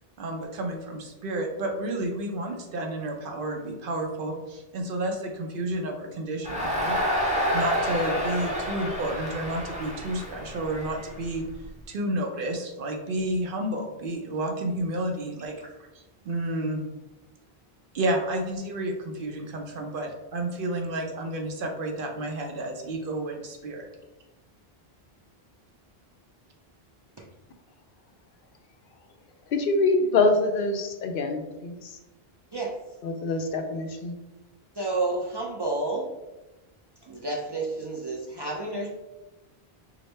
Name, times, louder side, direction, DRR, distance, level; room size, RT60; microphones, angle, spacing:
voice 1, 0.2-11.4 11.9-15.6 15.9-16.8 17.9-23.9, right 1 dB, 65° right, 2 dB, 0.7 m, -31 dB
Crowd, 6.4-11.6, equal, 10° right, 0.7 m, -29 dB
voice 2, 29.5-32.0 33.0-34.1, left 3 dB, 65° left, 5 dB, 0.7 m, -25 dB
voice 3, 34.8-36.1 37.0-38.9, right 2 dB, 45° right, -2 dB, 0.3 m, -30 dB
4.8 x 2.0 x 3.1 m, 1.0 s
omnidirectional pair, 1.0 m